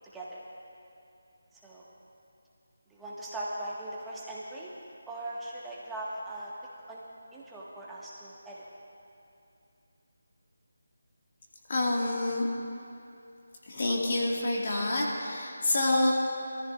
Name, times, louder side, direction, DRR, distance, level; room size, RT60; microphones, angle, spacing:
voice 1, 2.9-4.7 5.1-6.5 6.9-7.0 7.3-8.6 12.2-12.4, right 1 dB, 5° right, -7 dB, 1.7 m, -39 dB
voice 2, 11.7-12.5 13.7-16.1, left 2 dB, 50° left, -3 dB, 2.0 m, -27 dB
23.0 x 14.0 x 2.5 m, 2.7 s
figure-of-eight pair, 155°, 0 cm